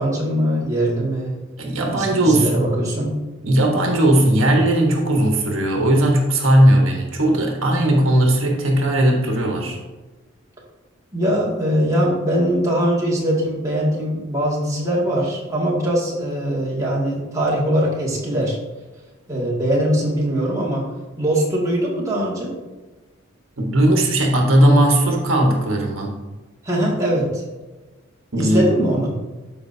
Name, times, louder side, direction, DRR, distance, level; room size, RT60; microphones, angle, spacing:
voice 1, 0.0-1.3 1.9-3.1 11.1-18.6 19.3-20.8 21.2-22.5 26.6-27.4 28.4-29.1, equal, 15° right, -5 dB, 2.1 m, -21 dB
voice 2, 1.6-2.7 3.4-9.8 23.6-26.1 28.3-28.8, right 1 dB, 70° right, 0 dB, 1.3 m, -17 dB
13.0 x 5.2 x 2.7 m, 1.2 s
head